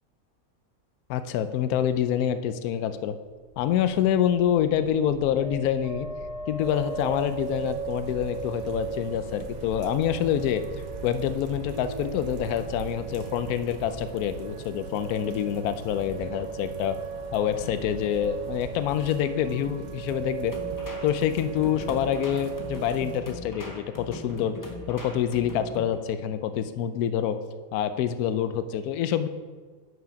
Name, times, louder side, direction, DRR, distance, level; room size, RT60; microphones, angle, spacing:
voice 1, 1.1-3.1 3.6-6.1 6.5-10.6 11.0-17.0 17.3-20.5 21.0-24.6 24.9-27.4 27.7-29.3, left 9 dB, 75° left, 11 dB, 1.0 m, -26 dB
sound 1, 3.3-17.0, right 1 dB, 35° right, 0.7 m, -41 dB
sound 2, 6.6-23.2, right 6 dB, 80° right, 0.4 m, -37 dB
sound 3, 20.5-26.0, left 1 dB, 25° left, 0.4 m, -40 dB
7.6 x 5.6 x 5.1 m, 1.4 s
omnidirectional pair, 1.7 m